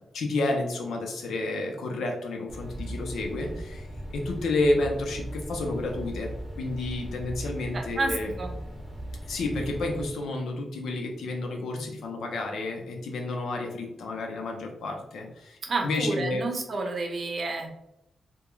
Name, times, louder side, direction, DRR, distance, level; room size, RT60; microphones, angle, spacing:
voice 1, 0.1-6.3 6.6-8.3 9.3-15.6 15.8-16.4, left 2 dB, 85° left, 2 dB, 0.6 m, -30 dB
sound 1, 2.5-10.1, right 1 dB, ahead, 1.1 m, -38 dB
voice 2, 7.7-8.5 15.6-17.8, right 3 dB, 50° right, 3 dB, 0.6 m, -30 dB
2.3 x 2.2 x 3.0 m, 0.82 s
cardioid pair, 100°, 0 cm